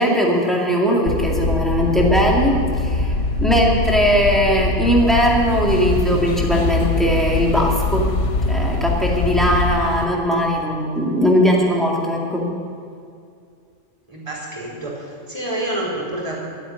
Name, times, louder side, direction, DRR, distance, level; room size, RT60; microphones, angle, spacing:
voice 1, 0.0-3.1 3.4-8.1 8.5-12.5, equal, ahead, -2 dB, 2.2 m, -19 dB
sound 1, 1.0-9.8, left 2 dB, 90° left, 1.3 m, -23 dB
sound 2, 4.8-10.1, left 4 dB, 55° left, 0.3 m, -28 dB
voice 2, 14.1-16.4, right 1 dB, 25° right, -6 dB, 4.4 m, -28 dB
12.5 x 8.7 x 9.7 m, 2.4 s
omnidirectional pair, 1.2 m